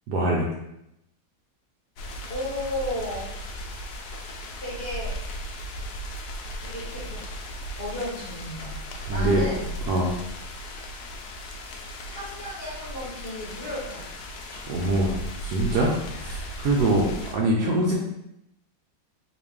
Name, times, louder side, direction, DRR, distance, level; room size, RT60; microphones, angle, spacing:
voice 1, 0.1-0.5 9.1-9.4 9.9-10.1 14.7-17.1 17.3-17.9, right 1 dB, 70° right, -3 dB, 1.0 m, -24 dB
sound 1, 2.0-17.4, equal, 90° left, 0.8 m, -36 dB
voice 2, 2.3-3.3 4.6-5.2 6.6-7.2 7.5-8.8 9.1-9.7 12.1-14.2 16.9-17.2, left 1 dB, 45° left, -6 dB, 0.8 m, -34 dB
4.1 x 2.5 x 3.4 m, 0.83 s
omnidirectional pair, 2.3 m